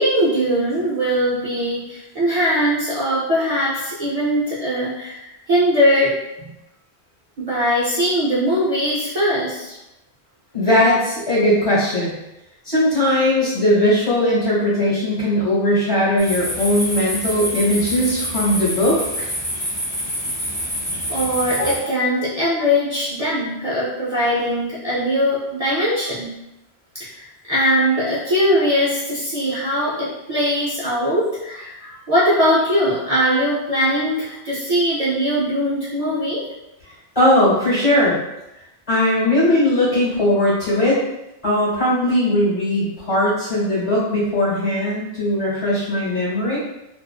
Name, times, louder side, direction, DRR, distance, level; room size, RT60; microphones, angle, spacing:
voice 1, 0.0-6.2 7.4-9.8 21.1-26.3 26.9-36.4, equal, 50° right, -8 dB, 0.5 m, -20 dB
voice 2, 10.5-12.1 12.6-19.3 37.1-38.2 38.9-41.0 41.4-46.6, left 1 dB, 35° left, -8 dB, 1.2 m, -19 dB
sound 1, 16.2-21.8, equal, 15° left, 1.0 m, -27 dB
2.4 x 2.4 x 2.3 m, 0.92 s
omnidirectional pair, 1.1 m